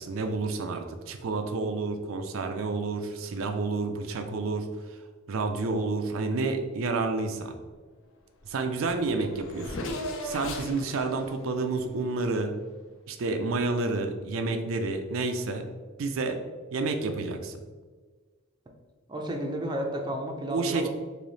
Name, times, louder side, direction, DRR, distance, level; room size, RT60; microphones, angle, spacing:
voice 1, 0.0-4.6 5.3-7.5 8.5-9.9 10.2-12.5 13.1-15.6 16.0-16.4 16.7-17.5 20.5-20.9, right 3 dB, 80° right, 5 dB, 0.4 m, -29 dB
Race car auto racing / Accelerating revving vroom, 8.5-8.6 8.8-12.8, left 1 dB, 70° left, 0.5 m, -38 dB
voice 2, 19.1-20.9, right 1 dB, 20° right, 1 dB, 0.4 m, -32 dB
3.3 x 2.7 x 3.9 m, 1.4 s
head